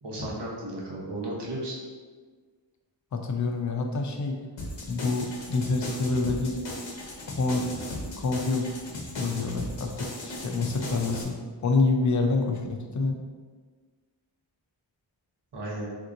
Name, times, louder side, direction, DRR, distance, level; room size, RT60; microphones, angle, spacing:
voice 1, 0.0-1.8 15.5-15.9, right 1 dB, 60° right, -4 dB, 0.9 m, -34 dB
voice 2, 3.1-4.4 4.8-6.6 7.3-7.7 8.2-8.7 9.2-11.4 11.6-13.2, left 3 dB, 40° left, 3 dB, 0.4 m, -27 dB
sound 1, 4.6-11.2, left 1 dB, 75° left, 0.8 m, -37 dB
3.6 x 2.7 x 2.5 m, 1.5 s
wide cardioid pair, 50°, 46 cm